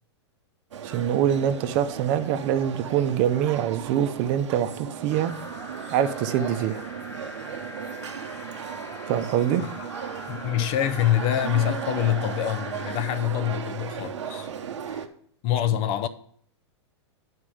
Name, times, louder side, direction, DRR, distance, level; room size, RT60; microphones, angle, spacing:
sound 1, 0.7-15.1, right 8 dB, 85° right, 0.8 m, -36 dB
voice 1, 0.8-5.3 5.9-6.8 9.1-9.6, right 10 dB, 45° right, 0.6 m, -24 dB
sound 2, 5.1-13.2, left 1 dB, 15° left, 1.0 m, -42 dB
voice 2, 9.6-9.9 10.3-14.5 14.9-15.0 15.4-16.1, left 11 dB, 40° left, 0.4 m, -26 dB
9.8 x 4.5 x 4.9 m
hypercardioid pair, 120°, 15 cm